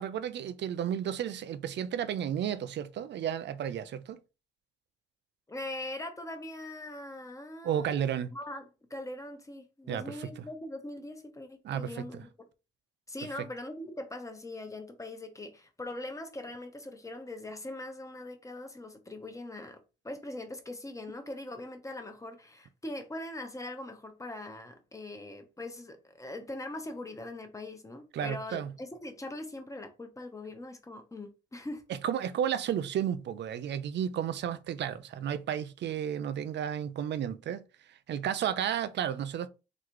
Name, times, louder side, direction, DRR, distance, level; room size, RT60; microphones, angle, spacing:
voice 1, 0.0-4.2 7.6-8.3 9.9-10.3 11.6-12.2 28.1-28.7 31.9-37.6 38.1-39.5, right 9 dB, 60° right, 0.5 m, -32 dB
voice 2, 5.5-8.0 8.3-12.3 13.1-19.8 20.0-31.8, left 1 dB, 15° left, 1.0 m, -41 dB
4.0 x 3.2 x 3.1 m
cardioid pair, 90°, 20 cm